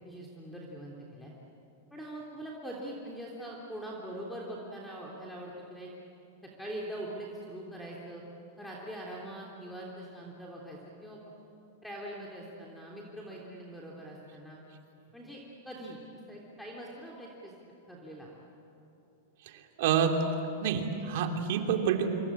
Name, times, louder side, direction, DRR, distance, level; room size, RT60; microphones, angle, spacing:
voice 1, 0.0-1.3 1.9-5.9 6.6-8.2 8.6-11.2 11.8-14.6 15.1-15.4 15.6-16.0 16.3-17.5 17.9-18.3, right 1 dB, 5° left, -3 dB, 3.3 m, -42 dB
voice 2, 19.4-20.2 20.6-22.1, right 8 dB, 60° right, 4 dB, 3.0 m, -28 dB
26.5 x 23.5 x 8.5 m, 2.8 s
supercardioid pair, 140°, 0 cm